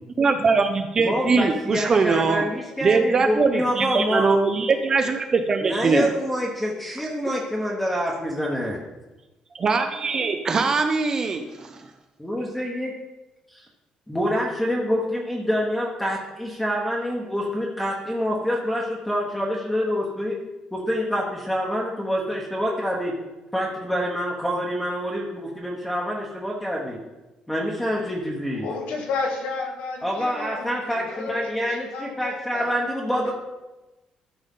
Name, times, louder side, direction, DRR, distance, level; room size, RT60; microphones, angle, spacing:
voice 1, 0.2-2.4 2.8-6.1 9.6-11.8, right 4 dB, 30° right, 6 dB, 0.5 m, -21 dB
voice 2, 1.0-4.3 5.6-8.8 12.2-12.9 14.1-20.4 20.7-23.1 23.5-27.0 27.5-28.7 30.0-33.3, equal, 5° left, -3 dB, 1.0 m, -26 dB
voice 3, 28.5-32.8 33.2-33.3, left 4 dB, 85° left, 1 dB, 1.8 m, -32 dB
13.0 x 5.4 x 3.7 m, 1.1 s
cardioid pair, 170°, 2 cm